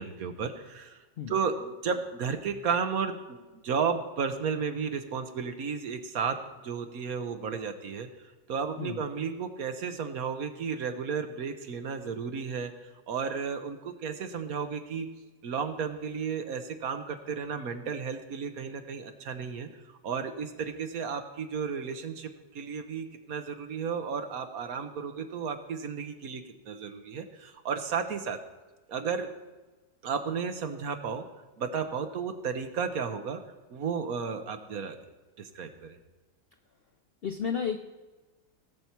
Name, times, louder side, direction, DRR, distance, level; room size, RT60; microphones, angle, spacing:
voice 1, 0.0-1.0 1.3-6.4 6.6-8.1 8.5-12.7 13.1-15.1 15.4-19.7 20.0-22.3 22.5-28.4 28.9-29.3 30.0-31.2 31.6-33.4 33.7-35.0 35.4-36.0, right 6 dB, 60° right, 7 dB, 1.3 m, -33 dB
voice 2, 37.2-37.8, left 7 dB, 75° left, 6 dB, 0.5 m, -32 dB
18.5 x 7.0 x 4.5 m, 1.2 s
omnidirectional pair, 1.8 m